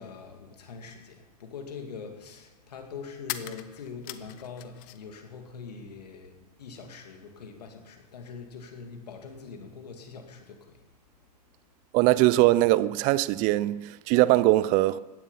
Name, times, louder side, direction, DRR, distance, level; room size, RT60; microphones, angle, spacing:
voice 1, 0.0-10.8, left 5 dB, 75° left, 2.6 m, -43 dB
sound 1, 1.0-1.1 3.2-5.2 5.5-6.3, left 15 dB, 45° left, 1.0 m, -41 dB
voice 2, 11.9-15.0, right 17 dB, 40° right, 0.5 m, -21 dB
17.0 x 12.0 x 5.7 m
hypercardioid pair, 95°, 21 cm